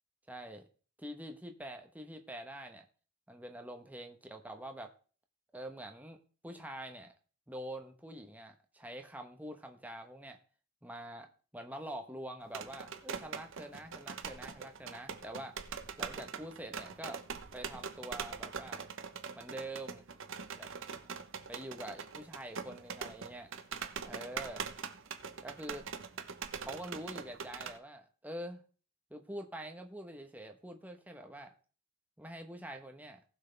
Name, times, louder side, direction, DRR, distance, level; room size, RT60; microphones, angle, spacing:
voice 1, 0.3-0.6 1.0-2.9 3.3-4.9 5.5-6.2 6.4-7.1 7.5-10.4 10.8-11.3 11.5-15.6 16.0-17.2 17.5-18.8 19.4-20.1 20.6-20.7 21.5-23.5 24.0-24.7 25.4-25.9 26.6-28.6 29.1-31.5 32.2-33.2, right 1 dB, 10° right, 5 dB, 1.1 m, -45 dB
sound 1, 12.4-27.8, right 6 dB, 60° right, 1.0 m, -43 dB
18.5 x 6.3 x 3.4 m, 0.39 s
head